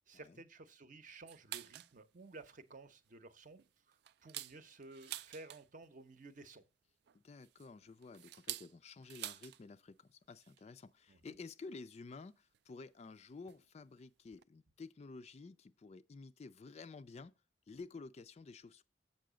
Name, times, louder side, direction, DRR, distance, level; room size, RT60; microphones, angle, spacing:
voice 1, 0.1-3.6 3.9-6.6 11.1-11.4, right 3 dB, 45° right, 0.7 m, -54 dB
sound 1, 1.3-1.9 2.4-2.5 2.9-3.1 3.6-5.9 7.1-9.6 9.9-10.0 10.3-10.6 11.5-11.6 12.5-12.6 13.5-13.6 14.0-14.1 14.2-14.4, right 14 dB, 60° right, 0.3 m, -48 dB
voice 2, 7.1-17.3 17.7-18.8, left 4 dB, 35° left, 0.3 m, -52 dB
7.6 x 5.5 x 5.0 m
head